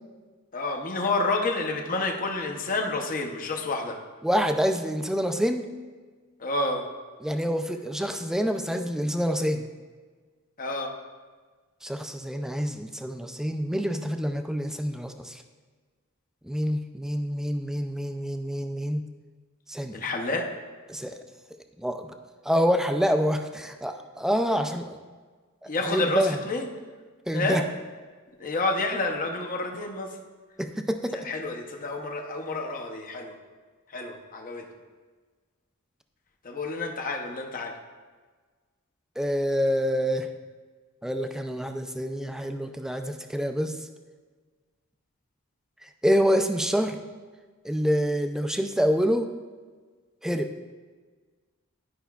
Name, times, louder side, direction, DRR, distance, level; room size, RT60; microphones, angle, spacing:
voice 1, 0.5-4.0 6.4-6.8 10.6-10.9 19.9-20.5 25.7-26.7 27.3-27.6 28.4-30.1 31.2-33.3 33.9-34.6 36.4-37.7, left 2 dB, 40° left, 2 dB, 0.7 m, -29 dB
voice 2, 4.2-5.7 7.2-9.7 11.8-15.4 16.4-19.0 19.7-20.1 20.9-21.2 21.8-22.1 22.4-25.0 25.9-26.4 27.3-27.6 30.6-31.3 39.2-40.3 41.0-43.7 46.0-47.0 47.6-49.3 50.2-50.5, equal, ahead, 6 dB, 0.3 m, -26 dB
11.0 x 5.6 x 2.3 m, 1.4 s
head